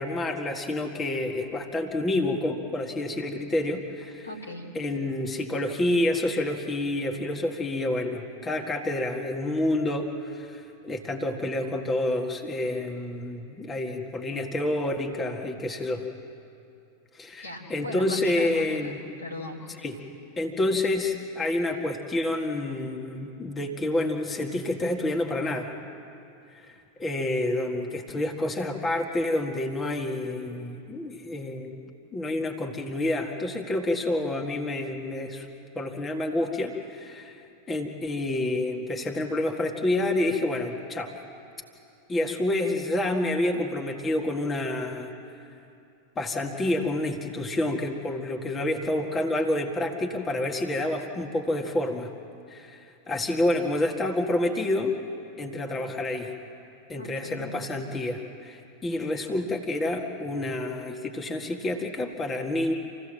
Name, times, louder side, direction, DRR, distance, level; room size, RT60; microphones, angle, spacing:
voice 1, 0.0-4.3 4.8-16.1 17.1-19.0 19.8-20.0 20.4-25.7 26.5-26.7 27.0-31.8 32.1-35.5 35.8-41.2 42.1-45.1 46.2-52.1 52.5-52.8 53.1-54.9 55.4-56.3 56.9-62.7, left 1 dB, 20° left, 2 dB, 1.9 m, -28 dB
voice 2, 4.2-4.7 17.4-19.7 56.9-57.5, left 1 dB, 80° left, -1 dB, 3.5 m, -38 dB
27.5 x 16.0 x 7.6 m, 2.7 s
figure-of-eight pair, 90°, 0 cm